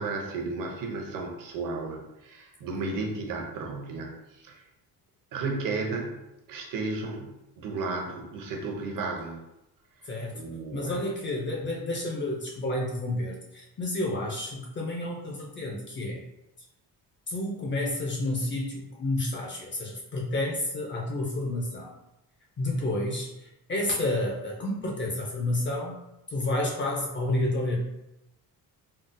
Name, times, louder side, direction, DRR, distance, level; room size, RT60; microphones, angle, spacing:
voice 1, 0.0-4.6 5.3-6.2 6.5-9.4 10.3-11.1, right 3 dB, 55° right, 1 dB, 0.7 m, -33 dB
voice 2, 10.0-10.4 10.7-16.2 17.3-21.9 22.6-26.0 26.3-27.8, left 1 dB, 30° left, -1 dB, 0.4 m, -30 dB
3.8 x 2.0 x 2.5 m, 0.89 s
cardioid pair, 155°, 39 cm